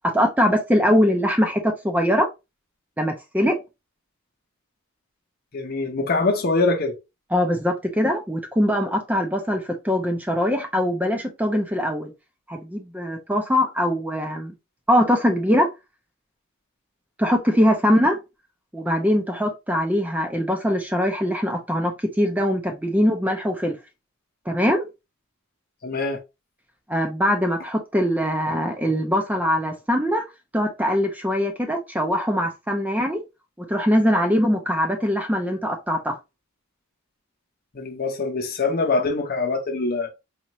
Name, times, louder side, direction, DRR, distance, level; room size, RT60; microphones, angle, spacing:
voice 1, 0.0-2.3 3.0-3.6 7.3-12.1 12.5-14.5 14.9-15.7 17.2-18.2 18.7-23.8 24.5-24.9 26.9-30.2 30.5-33.2 33.6-36.2, equal, 5° right, 0.5 m, -22 dB
voice 2, 5.5-6.9 25.8-26.2 37.7-40.1, left 3 dB, 45° left, 0.8 m, -23 dB
4.1 x 2.5 x 3.0 m
head